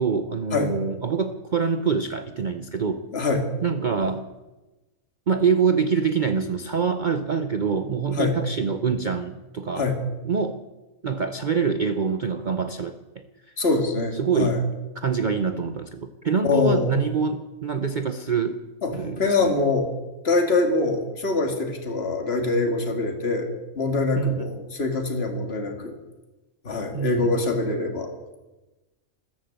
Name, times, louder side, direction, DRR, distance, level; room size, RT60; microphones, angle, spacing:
voice 1, 0.0-3.1 3.6-4.3 5.3-9.9 10.2-10.6 11.0-13.2 14.1-14.6 15.0-18.6 18.9-19.5 24.2-24.4 26.9-27.1, right 5 dB, 40° right, 9 dB, 0.8 m, -25 dB
voice 2, 3.1-3.5 8.1-8.4 9.8-10.0 13.6-14.6 16.4-16.9 18.8-19.9 20.2-23.5 23.8-25.9 26.6-28.1, left 3 dB, 45° left, 4 dB, 2.3 m, -24 dB
14.0 x 13.5 x 7.7 m, 1.1 s
omnidirectional pair, 1.5 m